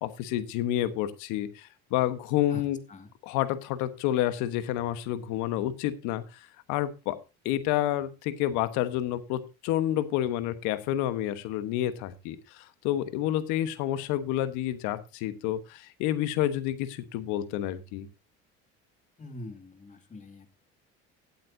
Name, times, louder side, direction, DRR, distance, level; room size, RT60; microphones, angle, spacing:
voice 1, 0.0-2.8 3.2-7.2 7.4-18.1, left 12 dB, 80° left, 12 dB, 1.4 m, -29 dB
voice 2, 19.2-20.5, left 1 dB, 25° left, 7 dB, 2.4 m, -43 dB
16.5 x 8.7 x 2.8 m, 0.28 s
supercardioid pair, 100°, 29 cm